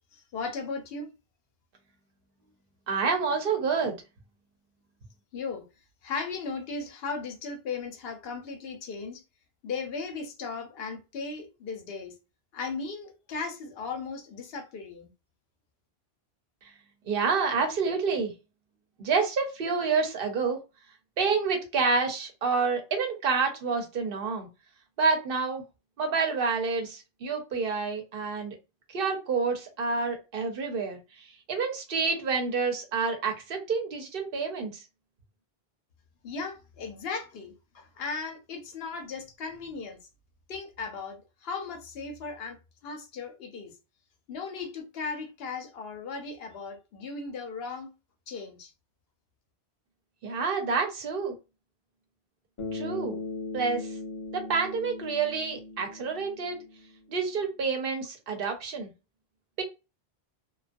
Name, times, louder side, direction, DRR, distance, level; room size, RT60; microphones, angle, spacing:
voice 1, 0.1-1.1 5.3-5.6 6.0-9.2 9.6-12.1 12.5-15.1 36.2-40.0 40.5-42.6 42.8-43.7 44.3-47.9 48.3-48.7, left 4 dB, 70° left, 0.8 m, -37 dB
voice 2, 2.9-4.0 16.6-16.7 17.1-18.3 19.0-20.6 21.2-24.5 25.0-25.6 26.0-28.6 28.9-31.0 31.5-34.8 50.2-51.3 52.7-53.2 53.5-53.9 54.3-56.6 57.1-58.9 59.6-59.7, right 5 dB, 65° right, 0.9 m, -28 dB
Bass guitar, 52.6-57.0, left 3 dB, 40° left, 0.5 m, -38 dB
2.4 x 2.2 x 2.5 m
omnidirectional pair, 1.0 m